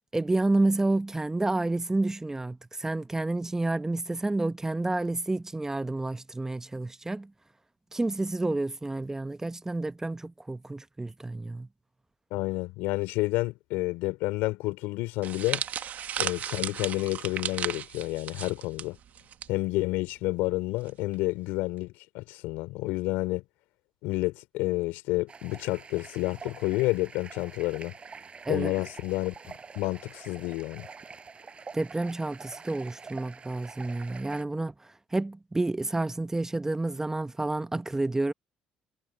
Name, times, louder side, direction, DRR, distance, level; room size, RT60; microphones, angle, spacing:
voice 1, 0.1-7.3 7.9-11.7 28.5-28.7 31.7-38.3, right 2 dB, 15° right, 1.0 m, -29 dB
voice 2, 12.3-15.6 16.2-19.0 19.5-23.4 24.0-28.0 28.5-30.9, left 21 dB, 80° left, 4.4 m, -30 dB
sound 1, 15.2-19.5 19.7-20.0 20.9-21.1, right 9 dB, 60° right, 1.4 m, -35 dB
sound 2, 25.3-34.4, right 5 dB, 35° right, 6.0 m, -46 dB
hypercardioid pair, 65°, 3 cm